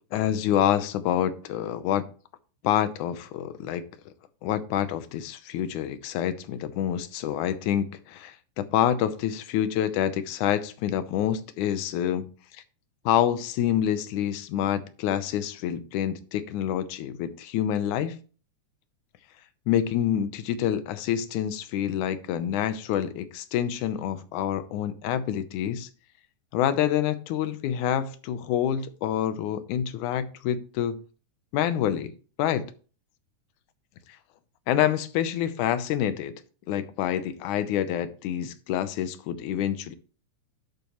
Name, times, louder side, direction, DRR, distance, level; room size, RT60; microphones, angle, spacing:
voice 1, 0.1-2.1 2.6-3.8 4.4-12.3 13.1-18.2 19.7-25.9 26.5-31.0 31.5-32.1 32.4-32.7 34.7-36.3 36.7-39.9, left 10 dB, 85° left, 2.3 m, -27 dB
11.0 x 8.4 x 3.1 m
omnidirectional pair, 3.5 m